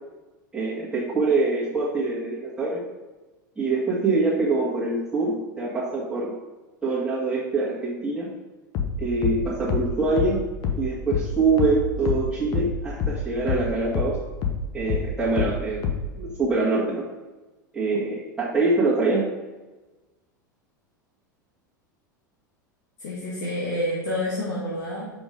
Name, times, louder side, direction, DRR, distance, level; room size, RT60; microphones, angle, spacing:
voice 1, 0.5-2.8 3.6-6.3 6.8-8.3 9.0-10.4 10.8-14.2 14.7-15.9 16.1-17.0 17.7-19.3, right 3 dB, 5° right, -10 dB, 2.1 m, -24 dB
sound 1, 8.7-13.7 13.9-16.2, left 6 dB, 40° left, 1.0 m, -27 dB
voice 2, 23.0-25.1, left 1 dB, 55° left, -7 dB, 2.0 m, -28 dB
5.4 x 5.1 x 5.1 m, 1.1 s
figure-of-eight pair, 85°, 11 cm